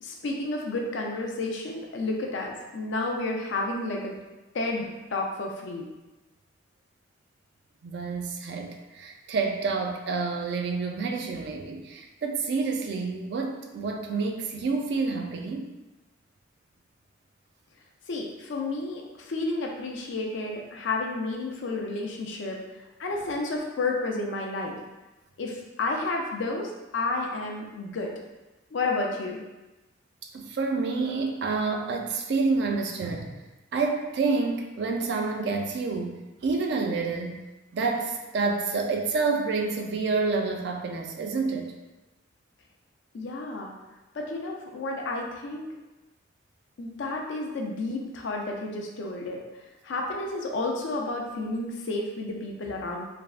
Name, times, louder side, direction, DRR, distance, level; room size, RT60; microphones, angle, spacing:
voice 1, 0.0-4.2 4.5-5.9 18.1-22.6 23.0-24.8 25.4-28.1 28.7-29.4 43.1-43.7 44.1-45.7 46.8-49.4 49.8-53.1, left 2 dB, 65° left, 0 dB, 0.4 m, -31 dB
voice 2, 7.8-15.7 30.3-33.4 33.7-37.4 37.7-41.7, right 4 dB, 55° right, 3 dB, 0.3 m, -28 dB
3.3 x 2.0 x 2.4 m, 1.1 s
head